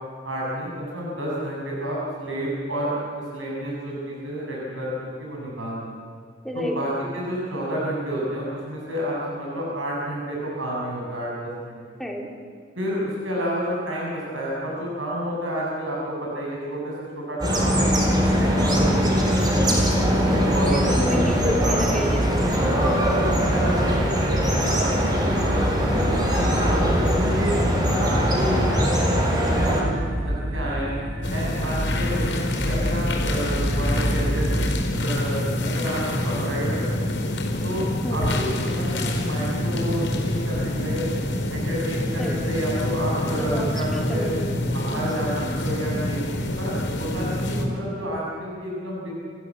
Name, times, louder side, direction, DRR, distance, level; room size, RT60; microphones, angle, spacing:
voice 1, 0.2-5.8 6.5-11.8 12.8-18.1 18.4-19.2 20.3-21.2 21.6-21.8 22.6-22.8 23.1-24.3 24.6-24.9 25.1-26.6 27.0-29.3 29.6-30.9 31.3-34.5 34.9-37.1 37.6-37.9 38.1-41.0 41.5-44.3 44.7-46.2 46.6-46.7 47.0-49.1, equal, 80° right, -4 dB, 6.9 m, -30 dB
voice 2, 6.4-6.8 12.0-12.3 20.7-22.5 38.0-38.4 42.2-42.4 43.4-44.6 44.9-45.0, equal, ahead, -1 dB, 3.3 m, -31 dB
sound 1, 17.4-29.8, equal, 20° right, 4.4 m, -21 dB
sound 2, 29.5-34.7, equal, 60° right, 3.6 m, -28 dB
sound 3, 31.2-47.7, left 1 dB, 70° left, 4.7 m, -26 dB
29.0 x 15.5 x 8.4 m, 2.1 s
head